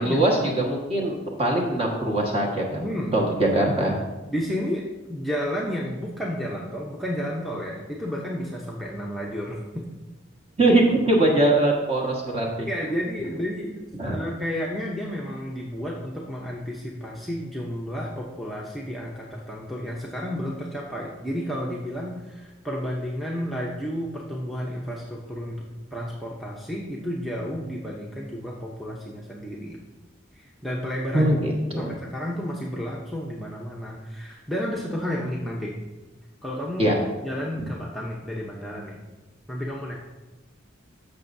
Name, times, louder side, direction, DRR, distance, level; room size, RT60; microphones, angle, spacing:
voice 1, 0.0-2.8 3.1-4.0 10.6-12.7 14.0-14.2 31.1-31.9 36.8-36.9, right 1 dB, 30° right, -1 dB, 1.5 m, -22 dB
voice 2, 2.8-3.2 4.3-4.8 5.1-9.9 12.7-29.8 30.3-31.3 31.8-35.7 36.4-36.9 37.2-39.0 39.5-39.9, equal, ahead, -4 dB, 0.7 m, -31 dB
14.0 x 6.1 x 2.7 m, 1.1 s
head